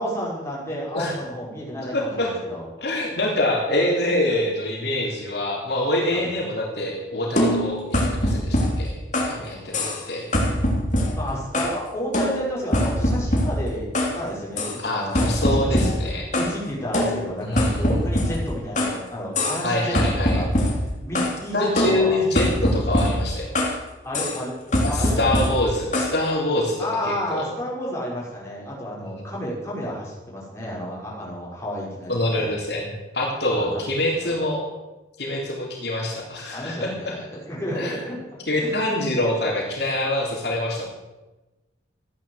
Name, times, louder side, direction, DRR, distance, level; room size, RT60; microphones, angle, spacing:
voice 1, 0.0-2.6 3.7-3.8 5.0-5.1 6.1-6.3 11.2-15.9 16.3-19.9 20.3-20.5 21.0-22.2 24.0-24.5 24.9-25.5 26.8-32.5 33.5-33.8 34.2-34.3 36.5-38.2 38.6-39.1, equal, 15° left, -5 dB, 5.5 m, -31 dB
voice 2, 1.8-2.3 2.8-9.0 9.3-10.3 14.8-16.2 17.4-18.0 19.6-20.4 21.5-23.5 24.8-26.8 27.1-27.4 29.0-29.2 32.1-34.6 35.2-37.1 37.8-38.0 38.5-40.9, left 1 dB, 60° left, -1 dB, 3.6 m, -25 dB
sound 1, 7.4-9.4 9.7-10.1 10.3-11.8 12.1-14.2 14.6-14.8 15.1-16.6 16.9-19.0 19.3-19.7 19.9-21.4 21.8-23.8 24.1-24.4 24.7-26.2, left 1 dB, 40° left, 3.2 m, -23 dB
14.5 x 10.5 x 8.1 m, 1.1 s
head